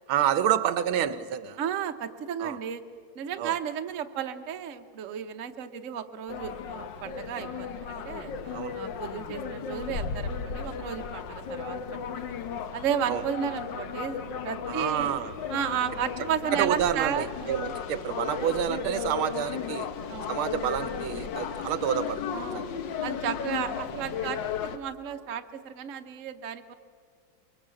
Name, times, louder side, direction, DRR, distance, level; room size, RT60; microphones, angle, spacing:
voice 1, 0.1-1.6 2.4-2.6 3.4-3.5 8.5-8.8 13.1-13.2 14.7-15.3 16.5-19.9 20.3-22.7, right 9 dB, 80° right, 14 dB, 1.7 m, -28 dB
voice 2, 1.6-2.8 3.1-8.3 8.7-12.3 12.7-15.2 15.5-17.7 20.1-20.3 22.3-22.6 23.0-26.8, right 9 dB, 50° right, 6 dB, 1.0 m, -33 dB
sound 1, 6.3-24.8, left 7 dB, 65° left, 1.6 m, -35 dB
23.5 x 21.5 x 7.6 m, 2.1 s
omnidirectional pair, 2.3 m